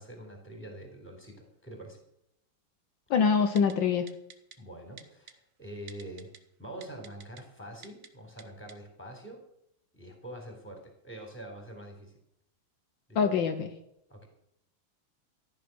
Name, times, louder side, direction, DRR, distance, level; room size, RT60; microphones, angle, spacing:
voice 1, 0.0-2.0 4.6-6.3 6.6-9.4 9.9-12.2 13.2-13.3 14.1-14.3, right 1 dB, 5° left, 3 dB, 3.8 m, -45 dB
voice 2, 3.1-4.1 13.1-13.7, left 6 dB, 75° left, 7 dB, 1.7 m, -24 dB
Typing, 3.6-3.7 4.1-4.6 5.0-5.3 5.9-6.4 6.8-7.4 7.8-8.1 8.4-8.5 8.7-8.8, right 7 dB, 50° right, 1.2 m, -48 dB
14.5 x 10.5 x 6.2 m, 0.78 s
omnidirectional pair, 2.2 m